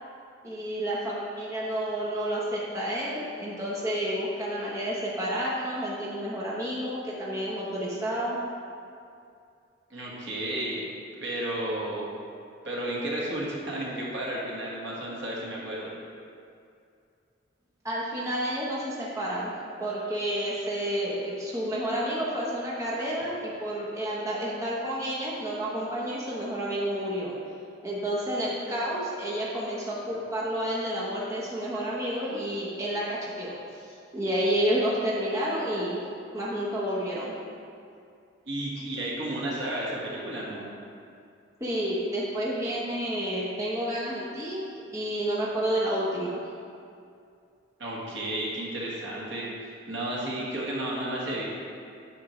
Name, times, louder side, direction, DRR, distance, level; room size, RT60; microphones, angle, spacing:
voice 1, 0.4-8.4 17.8-19.5 19.8-27.3 27.8-36.0 36.3-37.3 41.6-44.6 44.9-46.4, equal, 15° right, -6 dB, 0.8 m, -30 dB
voice 2, 9.9-10.8 11.1-12.1 12.6-15.9 38.5-40.7 47.8-51.4, right 1 dB, 65° right, -5 dB, 1.5 m, -32 dB
8.4 x 6.3 x 3.1 m, 2.4 s
head